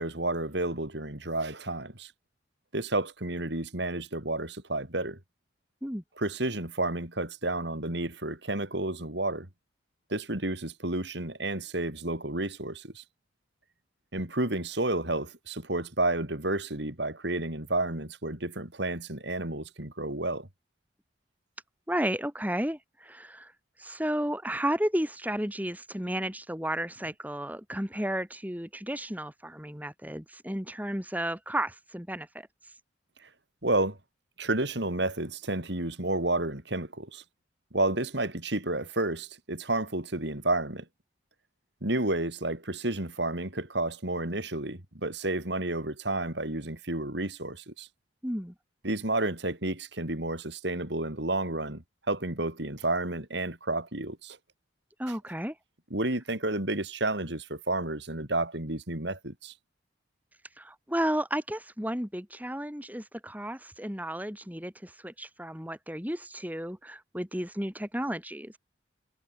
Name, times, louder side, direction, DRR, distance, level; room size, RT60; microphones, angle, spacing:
voice 1, 0.0-2.1 2.7-5.2 6.2-9.5 10.1-13.0 14.1-20.5 33.6-34.0 34.4-37.2 37.7-40.8 41.8-47.9 48.8-54.4 55.9-59.5, right 2 dB, 65° right, 3.9 m, -31 dB
voice 2, 21.9-23.5 23.8-32.5 48.2-48.5 55.0-55.5 60.6-68.6, right 1 dB, 10° right, 4.9 m, -33 dB
head